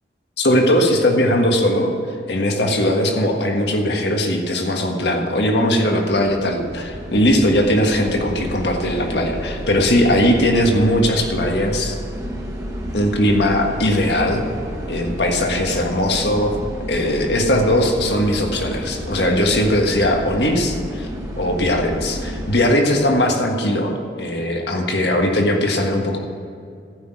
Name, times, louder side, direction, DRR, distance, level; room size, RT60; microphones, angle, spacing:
voice 1, 0.4-1.9 2.3-12.0 12.9-14.5 14.9-16.6 16.9-21.1 21.4-26.2, left 1 dB, 70° left, 2 dB, 1.6 m, -19 dB
sound 1, 6.1-22.6, equal, 20° right, 1.4 m, -31 dB
14.5 x 5.9 x 9.1 m, 2.4 s
head